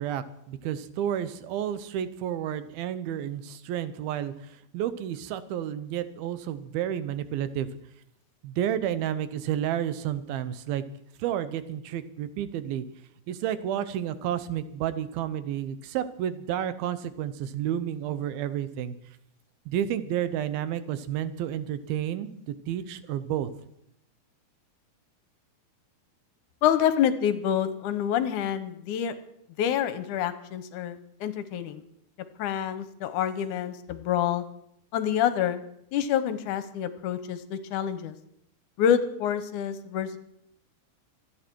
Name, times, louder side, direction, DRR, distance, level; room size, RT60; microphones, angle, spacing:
voice 1, 0.0-7.7 8.4-10.8 11.2-12.9 13.3-19.0 19.7-22.3 22.7-23.5, right 10 dB, 90° right, 13 dB, 2.8 m, -31 dB
voice 2, 26.6-29.2 29.6-31.8 32.4-34.4 34.9-35.6 35.9-38.2 38.8-40.2, left 9 dB, 70° left, 12 dB, 2.0 m, -27 dB
27.0 x 9.4 x 4.6 m, 0.75 s
omnidirectional pair, 4.2 m